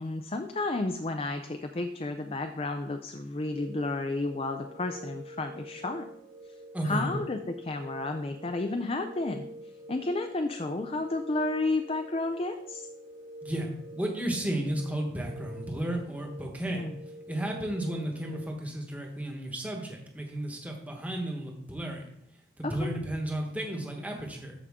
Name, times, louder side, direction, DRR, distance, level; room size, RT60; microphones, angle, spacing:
voice 1, 0.0-6.0 6.5-6.6 6.8-9.4 9.9-12.9 16.7-17.0 22.6-22.9, left 2 dB, 30° left, 7 dB, 0.5 m, -32 dB
sound 1, 3.5-18.5, right 1 dB, 90° right, 1.8 m, -47 dB
voice 2, 6.7-7.1 13.4-16.9 17.3-22.1 22.6-24.5, right 1 dB, 10° right, 1 dB, 1.3 m, -33 dB
13.5 x 5.0 x 3.6 m, 0.72 s
head